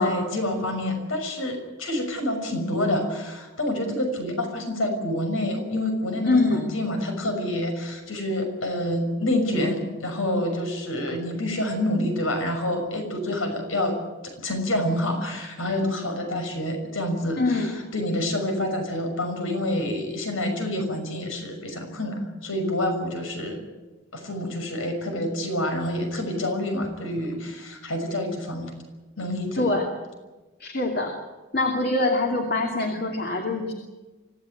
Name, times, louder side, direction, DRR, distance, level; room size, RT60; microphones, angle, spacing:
voice 1, 0.0-14.0 14.2-23.6 24.1-28.7 29.2-29.7, left 1 dB, 80° left, 5 dB, 6.1 m, -27 dB
voice 2, 6.3-6.7 17.4-17.8 29.5-29.9 30.6-31.1 31.5-33.7, left 2 dB, 50° left, 2 dB, 2.7 m, -24 dB
25.0 x 16.0 x 9.3 m, 1.2 s
head